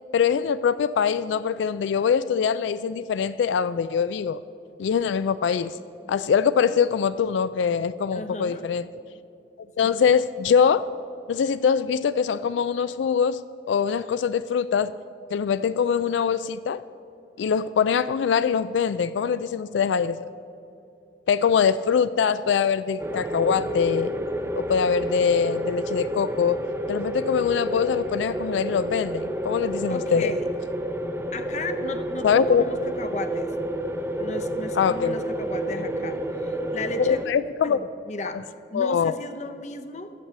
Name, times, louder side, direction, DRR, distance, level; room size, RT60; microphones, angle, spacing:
voice 1, 0.1-4.4 4.8-5.8 6.1-8.9 9.8-10.9 11.3-13.4 13.7-14.9 15.3-16.8 17.4-20.2 21.3-24.1 24.6-26.6 26.9-30.3 32.2-32.6 34.8-35.2 37.0-37.8 38.7-39.1, left 7 dB, 85° left, 14 dB, 0.3 m, -23 dB
voice 2, 8.1-8.7 9.8-10.0 29.9-30.5 31.3-33.5 34.2-37.2 37.6-38.4 38.7-40.1, left 2 dB, 40° left, 9 dB, 0.7 m, -35 dB
sound 1, 23.0-37.3, right 1 dB, 15° right, 0.6 m, -30 dB
13.0 x 8.1 x 7.4 m, 2.7 s
head